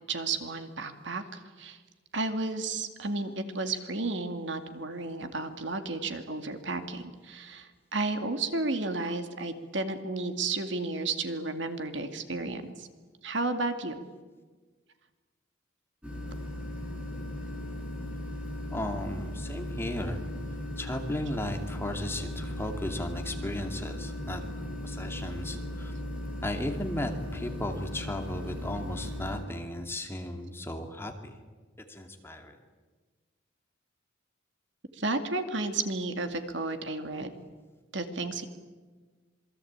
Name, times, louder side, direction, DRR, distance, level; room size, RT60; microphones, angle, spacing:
voice 1, 0.1-1.8 2.1-12.9 13.2-14.0 34.9-37.3 37.9-38.5, right 3 dB, 60° right, 7 dB, 2.3 m, -32 dB
sound 1, 16.0-29.4, left 1 dB, 5° right, 7.5 m, -37 dB
voice 2, 18.7-20.2 20.8-24.4 24.8-25.9 26.4-31.3 31.9-32.6, left 1 dB, 10° left, 4 dB, 2.4 m, -35 dB
27.5 x 22.0 x 8.8 m, 1.3 s
head